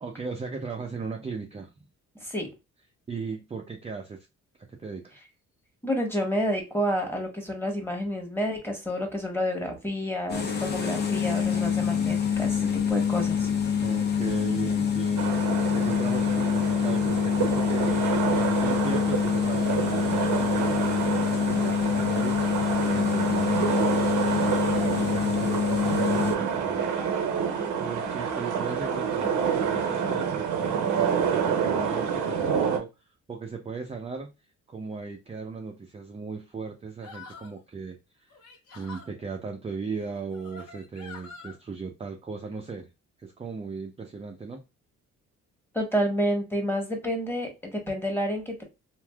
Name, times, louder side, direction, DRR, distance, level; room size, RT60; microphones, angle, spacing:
voice 1, 0.0-1.7 3.1-4.3 4.7-5.2 13.8-24.1 24.9-26.9 27.8-32.9 33.3-34.3 34.7-38.4 38.7-42.9 43.2-44.6, right 4 dB, 20° right, 2 dB, 0.5 m, -37 dB
voice 2, 5.8-13.5 45.7-48.6, equal, 5° left, 2 dB, 1.2 m, -29 dB
sound 1, 10.3-26.4, left 7 dB, 35° left, 0.8 m, -26 dB
sound 2, 15.2-32.8, right 7 dB, 75° right, 0.8 m, -28 dB
sound 3, 37.0-37.6 38.3-39.1 40.0-41.5, left 4 dB, 70° left, 1.2 m, -46 dB
3.3 x 2.5 x 2.3 m, 0.25 s
cardioid pair, 90°, 30 cm